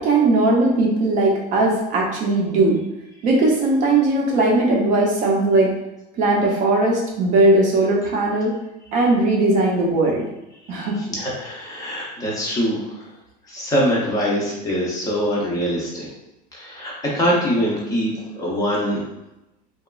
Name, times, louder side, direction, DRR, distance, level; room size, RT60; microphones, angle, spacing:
voice 1, 0.0-2.8 3.2-5.7 6.2-8.5 8.9-10.2 10.7-11.0, right 2 dB, 35° right, -1 dB, 0.5 m, -18 dB
voice 2, 10.7-13.1 13.5-16.1 16.5-19.0, equal, 15° left, -5 dB, 0.5 m, -23 dB
2.8 x 2.3 x 2.3 m, 0.92 s
cardioid pair, 160°, 21 cm